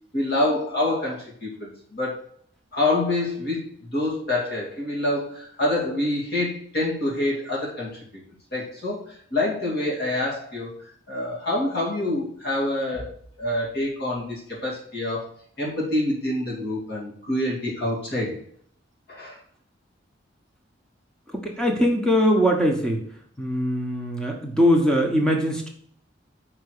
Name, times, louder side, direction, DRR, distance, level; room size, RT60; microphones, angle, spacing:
voice 1, 0.1-2.2 2.7-8.2 8.5-10.7 11.1-13.1 13.4-18.4 19.1-19.4, left 1 dB, 55° left, -4 dB, 2.6 m, -26 dB
voice 2, 21.3-23.0 23.4-25.7, equal, 5° left, 1 dB, 1.1 m, -21 dB
5.9 x 4.8 x 6.6 m, 0.62 s
head